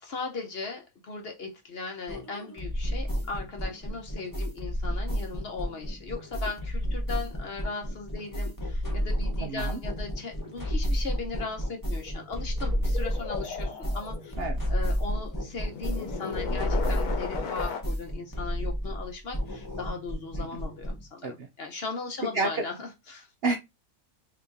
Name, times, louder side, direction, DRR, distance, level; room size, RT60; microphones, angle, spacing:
voice 1, 0.0-14.3 14.7-23.3, left 4 dB, 50° left, 0.8 m, -38 dB
sound 1, 2.1-21.1, equal, 20° left, 0.6 m, -31 dB
voice 2, 9.4-9.8 14.4-14.6 20.4-20.5 21.2-21.5 22.3-22.7 23.4-23.6, right 3 dB, 70° right, 0.6 m, -29 dB
sound 2, 11.0-11.1 11.3-17.8, left 6 dB, 80° left, 1.2 m, -36 dB
2.9 x 2.6 x 3.5 m
omnidirectional pair, 1.5 m